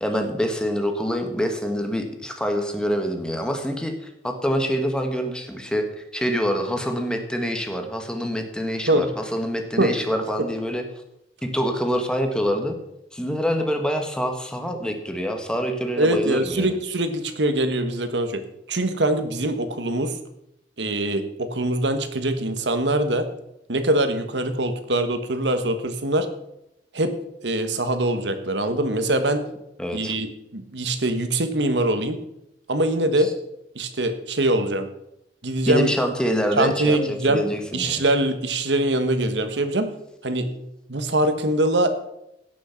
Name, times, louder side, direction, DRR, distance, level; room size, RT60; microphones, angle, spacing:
voice 1, 0.0-10.9 11.4-12.8 13.1-16.8 29.8-30.2 35.6-38.0, equal, 5° left, 4 dB, 1.5 m, -26 dB
voice 2, 16.0-18.4 18.7-20.2 20.8-23.3 23.7-26.3 26.9-27.1 27.4-29.4 29.9-30.3 30.5-32.2 32.7-33.3 33.7-34.9 35.4-35.9 36.6-37.4 37.7-39.9 40.2-40.5 40.9-41.9, right 1 dB, 90° right, 9 dB, 1.4 m, -23 dB
17.0 x 6.4 x 5.8 m, 0.84 s
head